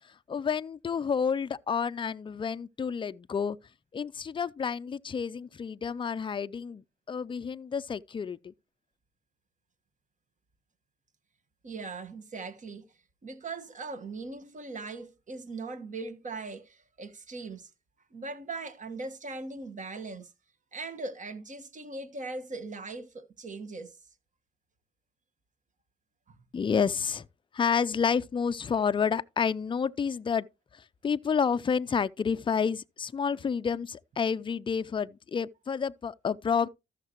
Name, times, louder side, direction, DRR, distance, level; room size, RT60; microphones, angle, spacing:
voice 1, 0.3-3.6 3.9-6.8 7.1-8.5 26.5-27.3 27.5-30.5 31.0-36.7, left 6 dB, 25° left, 0.5 m, -29 dB
voice 2, 11.6-12.8 13.2-17.7 18.1-20.3 20.7-24.0 26.3-26.4, right 3 dB, 40° right, 1.5 m, -40 dB
13.5 x 6.6 x 3.0 m
cardioid pair, 90°, 20 cm